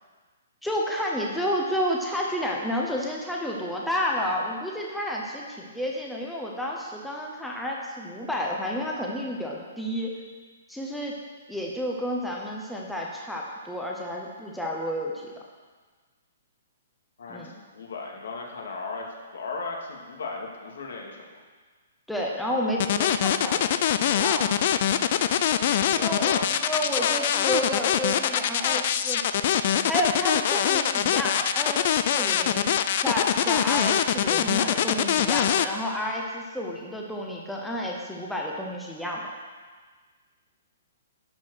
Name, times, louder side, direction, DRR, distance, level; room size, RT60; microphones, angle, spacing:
voice 1, 0.6-10.1 10.7-11.1 11.5-15.3 17.3-17.5 22.1-23.7 24.1-24.5 25.9-29.2 29.9-32.7 33.0-39.3, equal, ahead, -2 dB, 0.8 m, -30 dB
voice 2, 17.2-21.3 25.9-27.3, left 4 dB, 75° left, 0 dB, 2.1 m, -36 dB
sound 1, 22.8-35.6, left 10 dB, 40° left, 0.4 m, -23 dB
11.5 x 4.8 x 6.3 m, 1.5 s
hypercardioid pair, 170°, 0 cm